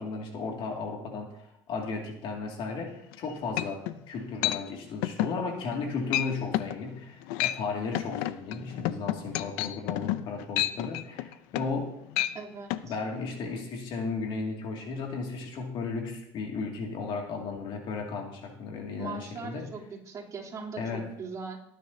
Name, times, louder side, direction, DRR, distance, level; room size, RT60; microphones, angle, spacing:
voice 1, 0.0-11.9 12.8-19.7 20.8-21.1, left 4 dB, 60° left, 1 dB, 2.4 m, -35 dB
sound 1, 3.1-3.2 3.6-4.0 4.4-4.6 5.0-5.4 5.7-5.9 6.1-6.3 6.5-6.8 7.2-7.6 7.9-11.8 12.1-12.3 12.7-12.8, left 15 dB, 85° left, 0.6 m, -29 dB
voice 2, 12.3-12.7 19.0-21.6, right 4 dB, 35° right, -3 dB, 3.2 m, -40 dB
19.0 x 10.0 x 2.8 m, 0.76 s
cardioid pair, 110°, 10 cm